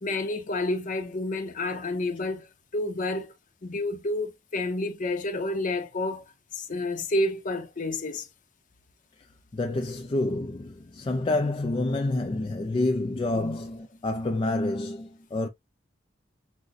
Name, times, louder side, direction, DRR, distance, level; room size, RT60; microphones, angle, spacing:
voice 1, 0.0-2.5 2.7-3.3 3.6-6.2 6.5-8.3 13.4-13.6, left 2 dB, 45° left, 0.7 m, -29 dB
voice 2, 9.5-15.5, left 2 dB, 25° left, 0.3 m, -28 dB
6.2 x 2.2 x 2.5 m
head